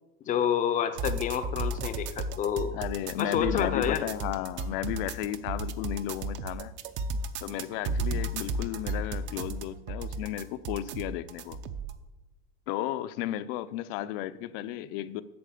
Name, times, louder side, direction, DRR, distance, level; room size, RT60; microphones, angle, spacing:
voice 1, 0.2-2.7 3.2-4.0, left 9 dB, 25° left, 10 dB, 0.6 m, -28 dB
sound 1, 1.0-12.0, right 2 dB, 40° right, 0.7 m, -33 dB
voice 2, 2.7-6.7 7.4-11.6 12.7-15.2, left 12 dB, 70° left, 14 dB, 0.7 m, -34 dB
8.7 x 6.4 x 8.4 m, 1.0 s
cardioid pair, 165°, 29 cm